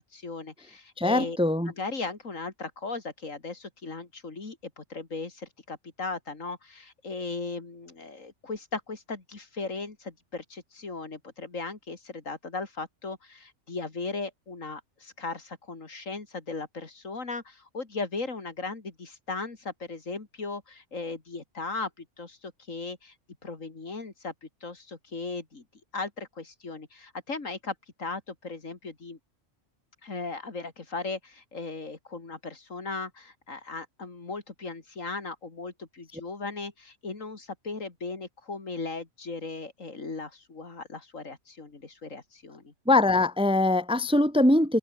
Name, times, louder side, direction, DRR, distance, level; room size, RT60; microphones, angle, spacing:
voice 1, 0.0-1.4 1.7-23.1 23.4-25.6 25.9-29.2 30.0-42.7, left 3 dB, 80° left, 3.4 m, -37 dB
voice 2, 1.0-1.7 42.9-44.8, left 2 dB, 5° right, 0.9 m, -22 dB
open air
omnidirectional pair, 1.3 m